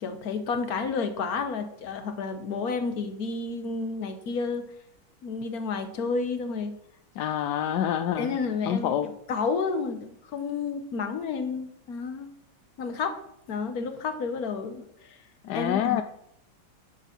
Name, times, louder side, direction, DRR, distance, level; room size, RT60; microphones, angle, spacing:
voice 1, 0.0-4.7 5.2-6.8 8.2-12.3 12.8-13.2 13.5-15.2 15.5-16.0, left 4 dB, 55° left, 8 dB, 1.4 m, -31 dB
voice 2, 7.2-8.3 8.7-9.1 15.5-16.0, left 10 dB, 70° left, 8 dB, 1.0 m, -26 dB
10.0 x 6.5 x 6.0 m, 0.74 s
omnidirectional pair, 2.2 m